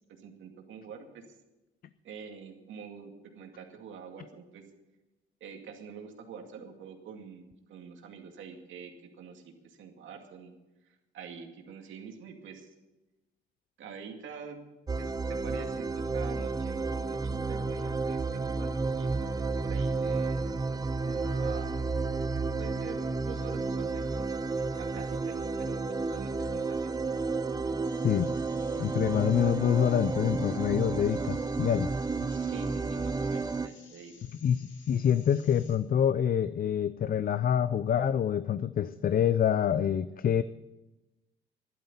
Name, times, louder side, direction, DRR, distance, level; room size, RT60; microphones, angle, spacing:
voice 1, 0.2-1.2 2.0-3.1 3.4-4.6 5.4-10.5 10.8-12.7 13.8-14.6 15.0-20.5 21.0-21.8 22.6-24.3 24.7-26.9 32.3-34.1, right 6 dB, 75° right, 4 dB, 2.3 m, -46 dB
sound 1, 14.9-33.7, right 3 dB, 20° right, 0.6 m, -31 dB
sound 2, 27.8-35.8, left 5 dB, 70° left, 2.9 m, -57 dB
voice 2, 28.8-31.9 34.4-40.4, left 9 dB, 45° left, 14 dB, 0.5 m, -26 dB
12.0 x 12.0 x 6.9 m, 1.0 s
cardioid pair, 90°, 20 cm